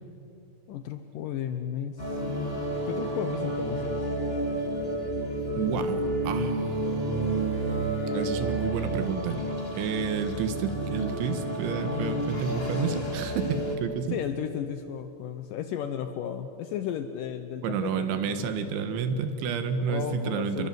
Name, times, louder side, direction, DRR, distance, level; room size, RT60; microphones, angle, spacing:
voice 1, 0.7-4.1 11.8-12.5 14.1-18.5 19.8-20.7, left 9 dB, 90° left, 9 dB, 1.9 m, -34 dB
sound 1, 2.0-13.8, right 1 dB, 20° left, 2.0 m, -31 dB
voice 2, 5.6-9.4 9.8-14.2 17.6-20.7, right 6 dB, 90° right, 8 dB, 3.9 m, -30 dB
29.0 x 22.0 x 7.8 m, 2.8 s
omnidirectional pair, 5.2 m